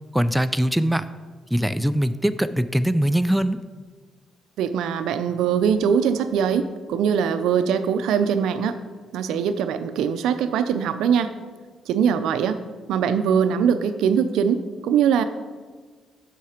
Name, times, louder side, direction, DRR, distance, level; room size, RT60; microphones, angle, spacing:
voice 1, 0.1-1.1 1.5-3.6, equal, 5° right, 11 dB, 0.3 m, -22 dB
voice 2, 4.6-8.8 9.1-11.3 11.9-12.6 12.9-15.2, right 7 dB, 85° right, 10 dB, 0.4 m, -22 dB
8.2 x 5.8 x 4.4 m, 1.4 s
cardioid pair, 90°, 0 cm